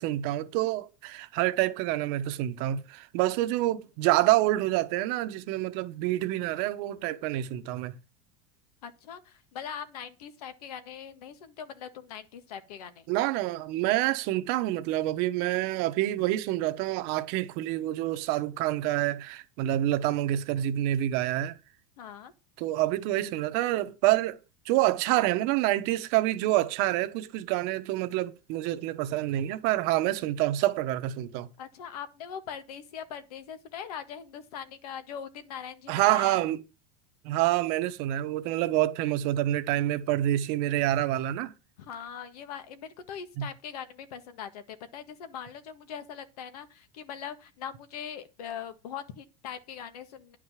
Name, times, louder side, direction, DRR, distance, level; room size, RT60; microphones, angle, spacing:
voice 1, 0.0-7.9 13.1-21.6 22.6-24.4 24.6-31.5 35.9-36.6 37.2-41.5 43.4-43.5, right 15 dB, 55° right, 1.1 m, -27 dB
voice 2, 8.8-13.1 22.0-22.3 31.6-36.5 41.8-50.4, left 8 dB, 90° left, 1.7 m, -41 dB
10.5 x 5.0 x 7.3 m
supercardioid pair, 145°, 19 cm